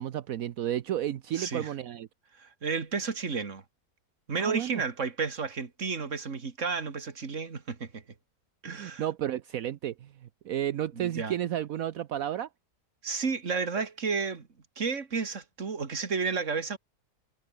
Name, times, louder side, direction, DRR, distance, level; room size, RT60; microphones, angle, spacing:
voice 1, 0.0-2.1 4.4-4.8 8.7-12.5, right 11 dB, 70° right, 1.2 m, -32 dB
voice 2, 1.4-1.7 2.4-3.6 4.3-8.0 8.6-9.0 11.0-11.3 13.0-14.5 14.8-16.8, right 5 dB, 55° right, 2.4 m, -32 dB
omnidirectional pair, 1.6 m